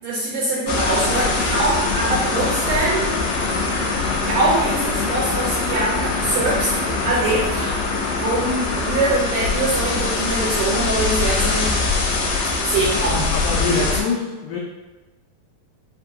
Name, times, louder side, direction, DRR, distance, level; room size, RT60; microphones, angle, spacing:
voice 1, 0.0-3.1 4.2-6.7 7.0-11.7 12.6-13.3 13.6-13.9, right 2 dB, 80° right, -4 dB, 1.9 m, -23 dB
sound 1, 0.7-14.0, left 3 dB, 75° left, 2.2 m, -22 dB
voice 2, 13.3-14.6, left 5 dB, 90° left, -2 dB, 1.8 m, -25 dB
7.5 x 2.5 x 2.7 m, 1.1 s
omnidirectional pair, 4.3 m